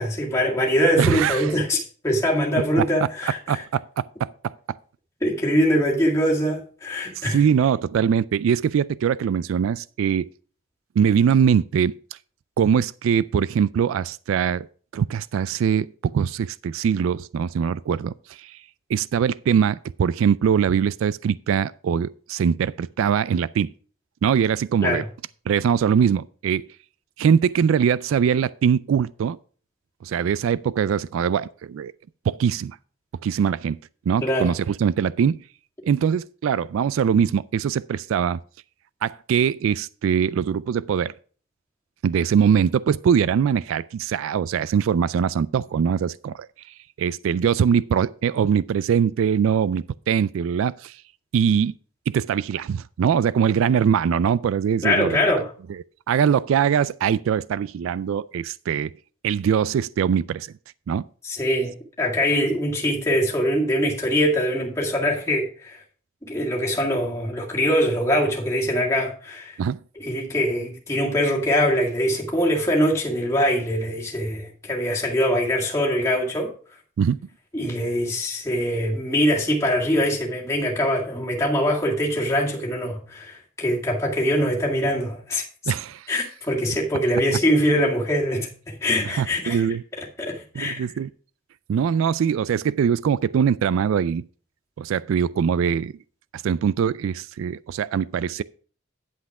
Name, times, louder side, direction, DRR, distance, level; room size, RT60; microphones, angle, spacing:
voice 1, 0.0-3.6 5.2-7.4 24.8-25.1 34.2-34.5 54.8-55.5 61.2-65.8 66.3-69.6 70.0-76.5 77.5-85.4 86.1-89.6 90.0-90.9, equal, 15° left, 2.0 m, -23 dB
voice 2, 1.0-1.5 2.8-2.9 3.5-4.5 7.2-10.3 11.0-11.9 12.6-14.7 14.9-18.6 18.9-23.7 24.2-25.0 25.5-26.6 27.2-29.4 30.0-31.9 32.3-32.8 33.2-33.8 34.1-35.4 35.9-38.4 39.0-41.1 42.0-46.5 47.0-51.0 51.3-51.7 52.1-55.4 55.7-58.9 59.2-60.5 60.9-61.0 69.6-69.8 77.0-77.2 85.7-86.1 89.1-89.8 90.5-91.1 91.7-94.2 94.8-95.9 96.3-98.4, right 7 dB, 80° right, 0.3 m, -22 dB
10.5 x 5.9 x 4.8 m
head